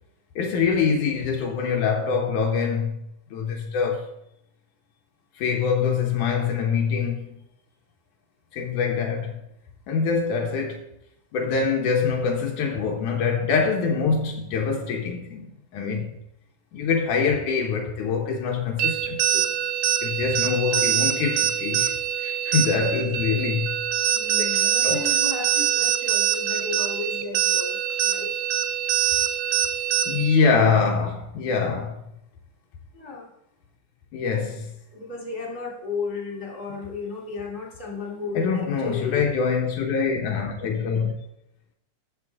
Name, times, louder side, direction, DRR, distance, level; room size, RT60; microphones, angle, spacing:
voice 1, 0.4-4.1 5.4-7.4 8.5-9.4 9.9-10.9 11.3-16.1 16.7-19.5 20.0-21.9 22.2-23.8 24.4-25.1 30.0-32.0 34.1-34.7 38.3-41.1, left 5 dB, 80° left, 2.7 m, -24 dB
sound 1, 18.8-30.4, right 11 dB, 75° right, 2.0 m, -24 dB
voice 2, 24.1-27.8 28.0-28.3 32.9-33.3 34.9-39.2, left 4 dB, 15° left, 2.8 m, -34 dB
13.0 x 7.2 x 3.6 m
omnidirectional pair, 3.5 m